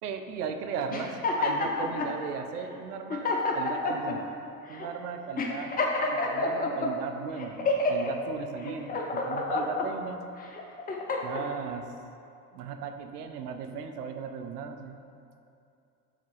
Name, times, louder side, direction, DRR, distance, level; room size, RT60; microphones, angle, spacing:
voice 1, 0.0-4.3 4.7-5.7 6.0-10.2 11.2-11.9 12.5-15.0, right 6 dB, 75° right, 6 dB, 0.6 m, -37 dB
sound 1, 0.9-2.1 2.7-2.8 3.1-4.2 4.7-4.9 5.4-6.9 7.4-8.1 8.6-9.9 10.4-11.4, left 3 dB, 20° left, 0.6 m, -28 dB
4.9 x 3.6 x 5.4 m, 2.6 s
figure-of-eight pair, 60°, 47 cm